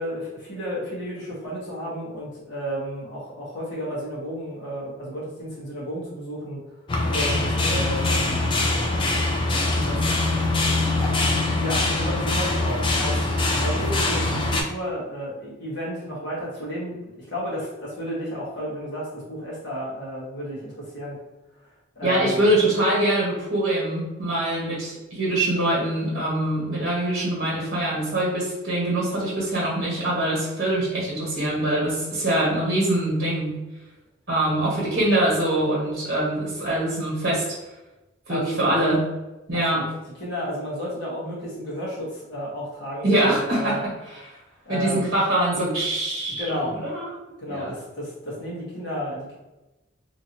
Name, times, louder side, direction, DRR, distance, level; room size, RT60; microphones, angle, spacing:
voice 1, 0.0-6.6 7.1-8.9 9.8-10.1 11.6-13.3 13.6-21.2 21.9-22.4 38.3-38.7 39.7-39.9 40.2-43.8 44.6-45.1 46.4-46.8 47.4-49.4, equal, 55° left, -6 dB, 1.3 m, -32 dB
sound 1, 6.9-14.6, left 2 dB, 25° left, 0.4 m, -23 dB
voice 2, 22.0-33.6 34.3-37.4 38.3-39.0 39.5-39.8 43.0-43.8 44.7-47.0 47.5-47.7, right 1 dB, 50° right, -6 dB, 1.2 m, -23 dB
2.9 x 2.6 x 2.9 m, 1.0 s
head